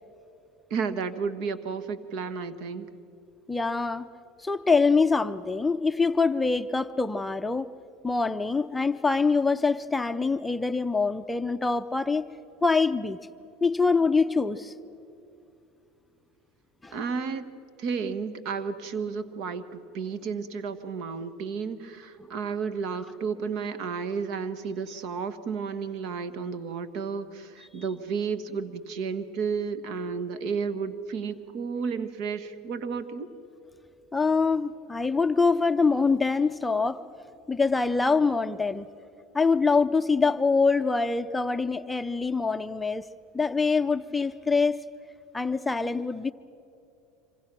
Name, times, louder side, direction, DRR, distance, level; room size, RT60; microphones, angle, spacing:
voice 1, 0.7-2.9 16.9-17.5 17.8-33.3, right 5 dB, 60° right, 12 dB, 1.4 m, -32 dB
voice 2, 3.5-4.1 4.4-7.7 8.0-12.3 12.6-13.2 13.6-14.7 16.8-17.0 34.1-37.0 37.5-38.9 39.3-43.1 43.3-44.8 45.3-46.3, left 4 dB, 10° left, 10 dB, 0.6 m, -24 dB
26.0 x 25.5 x 6.1 m, 2.9 s
supercardioid pair, 110°, 0 cm